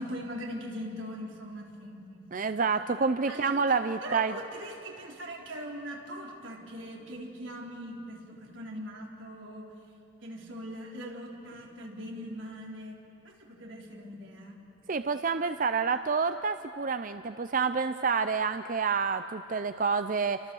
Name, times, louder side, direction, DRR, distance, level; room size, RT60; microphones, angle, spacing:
voice 1, 0.0-2.5 3.3-9.7 10.2-14.6, equal, 85° right, -1 dB, 3.9 m, -41 dB
voice 2, 2.3-4.3 14.9-20.4, right 5 dB, 45° right, 10 dB, 0.5 m, -28 dB
30.0 x 24.5 x 7.1 m, 2.7 s
head